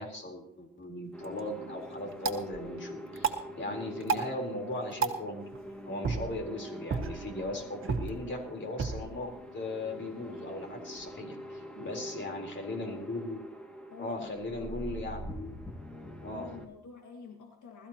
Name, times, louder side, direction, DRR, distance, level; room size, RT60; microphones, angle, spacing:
voice 1, 0.0-5.4 5.9-13.4 14.0-15.6 16.2-16.5, left 2 dB, 40° left, 2 dB, 4.0 m, -38 dB
sound 1, 1.0-11.1, right 5 dB, 45° right, 1.7 m, -37 dB
sound 2, 1.1-16.7, equal, 5° left, 1.8 m, -45 dB
voice 2, 11.7-12.3 13.9-14.7 16.3-17.9, left 5 dB, 75° left, 2 dB, 2.0 m, -48 dB
21.0 x 14.0 x 3.0 m, 0.72 s
cardioid pair, 90°, 30 cm